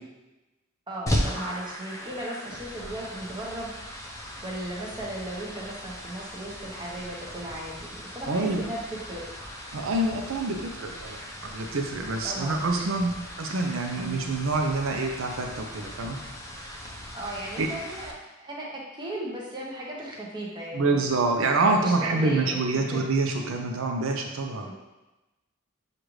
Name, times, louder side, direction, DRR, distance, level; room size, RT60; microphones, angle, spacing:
voice 1, 0.9-3.7 4.4-9.2 12.2-12.6 13.9-14.3 17.1-21.1 21.8-22.6 22.9-23.0 24.7-24.8, right 1 dB, 25° right, -4 dB, 0.9 m, -36 dB
sound 1, 1.1-18.1, equal, 15° left, 0.5 m, -37 dB
voice 2, 8.3-8.6 9.7-16.2 17.6-17.7 20.7-24.7, right 3 dB, 85° right, 3 dB, 0.5 m, -26 dB
6.4 x 2.5 x 3.1 m, 1.1 s
head